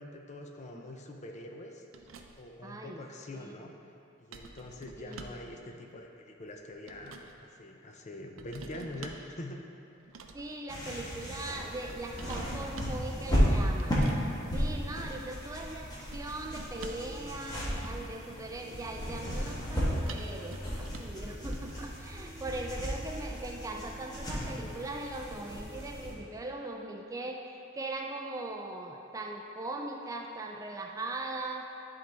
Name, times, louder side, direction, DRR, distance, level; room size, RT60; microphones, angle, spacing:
voice 1, 0.0-1.8 2.3-3.7 4.2-9.6, left 1 dB, 35° left, 3 dB, 0.5 m, -44 dB
sound 1, 1.9-2.6 4.3-5.5 6.5-7.4 8.4-9.3 10.0-10.6 11.9-13.0 13.8-14.3 16.1-17.2 17.5-18.2 20.1-21.2 21.5-21.7, right 3 dB, 75° right, 0.5 m, -47 dB
voice 2, 2.6-3.0 3.3-3.6 5.0-5.8 8.8-8.9 10.3-31.6, right 2 dB, 15° right, 2 dB, 0.3 m, -40 dB
sound 2, 10.7-26.1, equal, 20° left, 1.2 m, -34 dB
10.5 x 3.9 x 3.4 m, 2.7 s
head